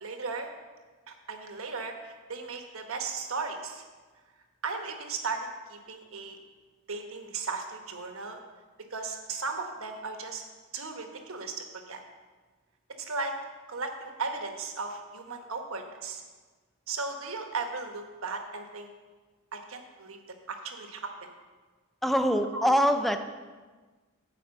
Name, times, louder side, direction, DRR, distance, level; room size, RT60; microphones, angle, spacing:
voice 1, 0.0-0.5 1.1-3.8 4.6-6.4 6.9-8.4 8.9-10.4 10.7-12.0 13.0-13.3 13.7-16.2 16.9-18.9 19.5-20.2 20.5-21.1 22.5-22.7, right 4 dB, 75° right, 4 dB, 1.2 m, -36 dB
voice 2, 22.0-23.3, equal, ahead, 7 dB, 0.4 m, -24 dB
9.3 x 4.7 x 7.6 m, 1.3 s
head